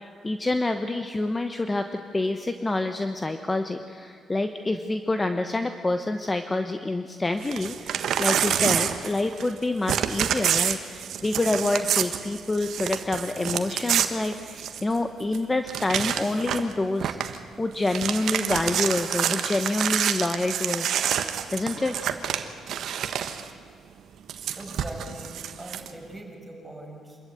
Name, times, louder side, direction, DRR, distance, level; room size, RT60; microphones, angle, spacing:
voice 1, 0.0-21.0 21.5-22.0, left 2 dB, 20° left, 7 dB, 1.1 m, -27 dB
Crumpling crinkling / Tearing, 7.4-9.6 9.9-15.0 15.3-15.4 15.7-16.7 17.0-17.4 17.7-23.5 24.3-25.9, right 9 dB, 70° right, 1.4 m, -27 dB
voice 2, 24.5-27.2, right 1 dB, 15° right, -1 dB, 6.4 m, -42 dB
26.0 x 14.0 x 9.4 m, 2.2 s
cardioid pair, 90°, 0 cm